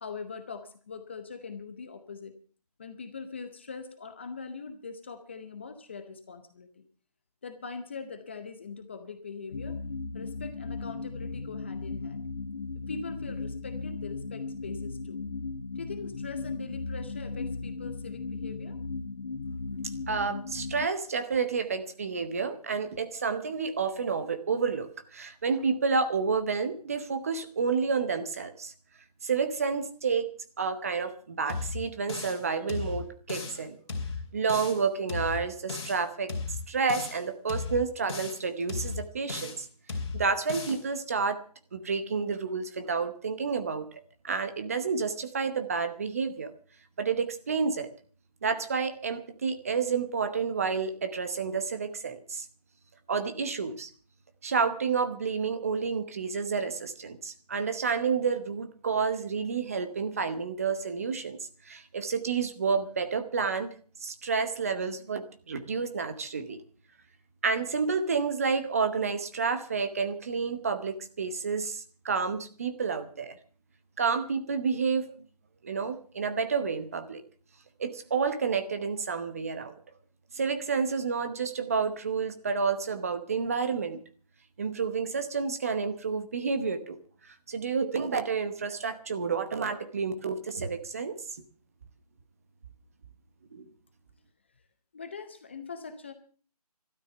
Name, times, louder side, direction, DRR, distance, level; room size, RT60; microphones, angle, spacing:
voice 1, 0.0-2.4 2.8-6.9 7.4-9.8 10.1-12.2 12.7-15.2 15.8-18.8 94.9-96.1, left 5 dB, 20° left, 8 dB, 0.7 m, -42 dB
sound 1, 9.5-20.9, left 4 dB, 60° left, 1.2 m, -37 dB
voice 2, 20.1-28.7 29.2-30.3 30.6-33.8 34.3-36.3 36.7-39.7 40.1-41.4 41.7-46.5 47.0-47.9 48.4-52.5 53.1-53.9 54.4-61.4 61.6-63.7 64.0-66.6 67.4-73.4 74.0-75.1 75.6-77.2 77.8-79.7 80.3-84.0 84.6-87.0 87.3-91.2 93.5-93.7, right 5 dB, 20° right, 10 dB, 0.9 m, -30 dB
sound 2, 31.5-32.4 32.7-33.6 33.9-34.8 35.1-36.0 36.3-37.2 37.5-38.4 38.7-39.6 39.9-40.8, left 4 dB, 40° left, 2.8 m, -36 dB
12.5 x 12.5 x 6.9 m, 0.42 s
figure-of-eight pair, 170°, 20 cm